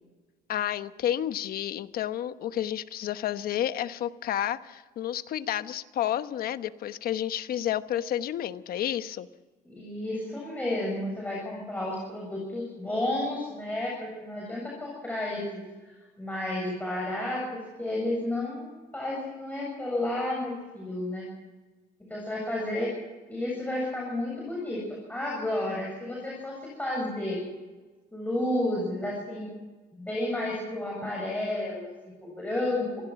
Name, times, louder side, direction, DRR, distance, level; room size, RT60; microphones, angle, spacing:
voice 1, 0.5-9.3, left 11 dB, 60° left, 12 dB, 1.1 m, -30 dB
voice 2, 9.6-15.6 16.2-21.3 22.1-22.9 23.3-27.4 28.1-29.5 29.9-33.1, left 1 dB, 10° left, -3 dB, 7.5 m, -31 dB
26.0 x 16.5 x 6.0 m, 1.3 s
cardioid pair, 110°, 17 cm